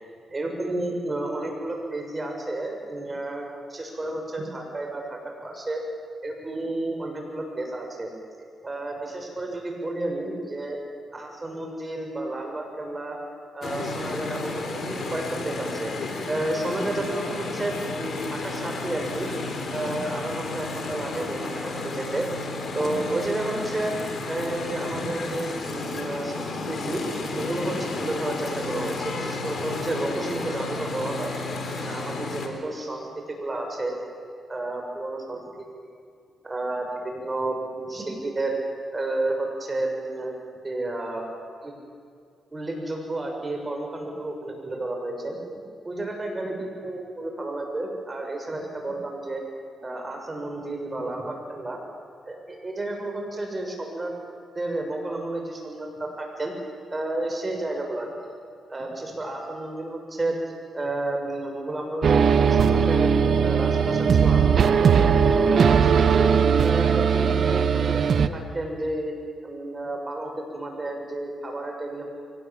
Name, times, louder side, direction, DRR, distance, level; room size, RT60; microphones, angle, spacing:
voice 1, 0.3-5.8 6.2-8.1 8.6-10.8 11.1-13.2 13.5-15.9 16.3-19.3 19.7-23.9 24.3-27.0 27.3-31.3 31.8-33.0 33.3-33.9 34.5-35.9 36.4-38.6 38.9-40.3 40.6-41.3 41.6-41.7 42.5-45.4 45.8-49.4 49.8-51.8 52.3-54.1 54.6-56.5 56.9-58.1 58.7-60.4 60.7-63.1 63.4-64.9 65.4-66.3 66.6-69.1 69.4-72.0, right 2 dB, 30° right, 2 dB, 6.9 m, -31 dB
sound 1, 13.6-32.5, left 3 dB, 55° left, 3.8 m, -32 dB
sound 2, 62.0-68.3, right 6 dB, 65° right, 1.1 m, -19 dB
23.5 x 18.5 x 8.9 m, 2.3 s
supercardioid pair, 55°, 0 cm